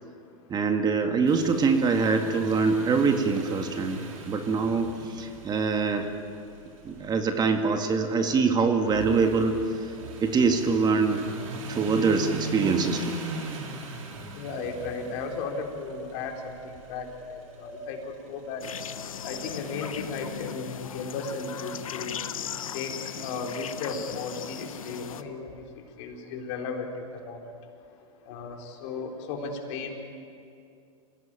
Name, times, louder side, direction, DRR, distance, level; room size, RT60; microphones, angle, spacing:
voice 1, 0.5-6.1 6.8-9.9 10.2-11.2 11.7-13.2, right 4 dB, 25° right, 5 dB, 1.9 m, -24 dB
sound 1, 1.3-20.1, right 3 dB, 80° right, 4.2 m, -40 dB
voice 2, 14.3-18.7 19.2-22.2 22.7-23.0 23.2-25.6 26.0-27.4 28.3-30.0, left 4 dB, 55° left, 2 dB, 4.1 m, -35 dB
sound 2, 18.6-25.2, left 8 dB, 90° left, 1.1 m, -37 dB
26.5 x 17.5 x 9.0 m, 2.5 s
hypercardioid pair, 115°, 17 cm